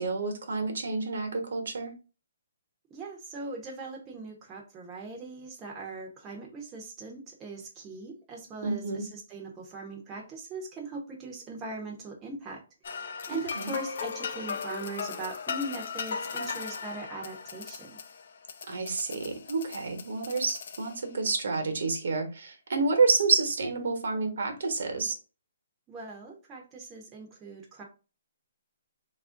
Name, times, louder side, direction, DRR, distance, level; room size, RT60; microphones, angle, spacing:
voice 1, 0.0-1.9 8.6-9.0 13.5-13.7 18.7-25.2, right 4 dB, 70° right, 6 dB, 0.9 m, -29 dB
voice 2, 2.9-18.0 25.9-27.8, right 3 dB, 15° right, -1 dB, 0.6 m, -40 dB
sound 1, 12.8-21.2, left 5 dB, 60° left, 0.4 m, -38 dB
3.0 x 2.5 x 3.5 m, 0.32 s
hypercardioid pair, 160°, 0 cm